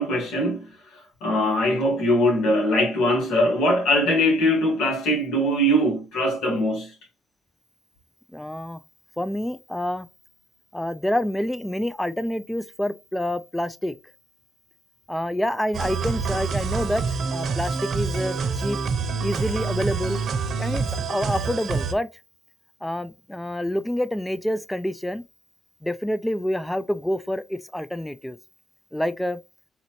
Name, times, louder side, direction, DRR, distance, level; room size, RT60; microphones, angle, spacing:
voice 1, 0.0-6.9, equal, 90° left, 2.1 m, -22 dB
voice 2, 8.3-8.8 9.2-10.1 10.7-13.9 15.1-18.8 19.2-20.2 20.6-22.1 22.8-25.2 25.8-28.4 28.9-29.4, left 1 dB, 5° left, 0.3 m, -27 dB
sound 1, 15.7-21.9, right 5 dB, 60° right, 0.8 m, -27 dB
4.1 x 4.0 x 3.0 m
cardioid pair, 90°, 0 cm